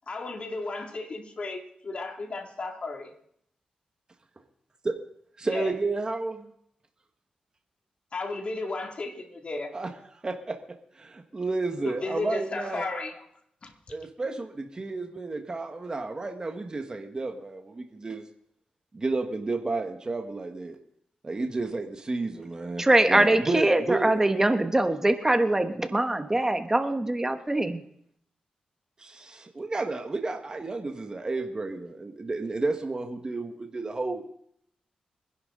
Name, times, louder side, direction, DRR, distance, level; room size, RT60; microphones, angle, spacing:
voice 1, 0.1-3.1 5.5-5.7 8.1-9.7 11.8-13.1 13.6-13.7, left 3 dB, 50° left, 3 dB, 2.5 m, -34 dB
voice 2, 5.4-6.5 9.7-10.6 10.9-12.9 13.9-18.3 18.9-20.8 21.2-24.1 29.0-34.2, right 3 dB, 35° right, 4 dB, 1.5 m, -31 dB
voice 3, 22.8-27.8, right 1 dB, 20° right, 8 dB, 1.2 m, -23 dB
24.0 x 11.0 x 3.9 m, 0.69 s
cardioid pair, 70°, 2 cm